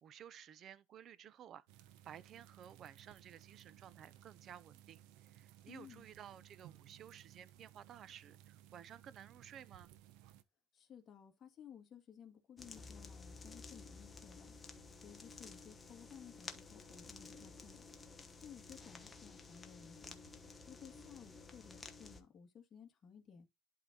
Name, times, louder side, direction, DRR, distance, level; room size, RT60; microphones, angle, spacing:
voice 1, 0.0-1.6 2.0-9.9, right 9 dB, 45° right, 0.5 m, -55 dB
Making Lasagna, 1.7-10.4, right 12 dB, 80° right, 0.7 m, -61 dB
voice 2, 5.7-6.0 10.7-17.8 18.4-20.2 20.7-23.5, left 8 dB, 35° left, 1.8 m, -57 dB
sound 1, 12.6-22.2, left 4 dB, 15° left, 1.0 m, -53 dB
11.5 x 3.9 x 2.8 m
cardioid pair, 135°, 0 cm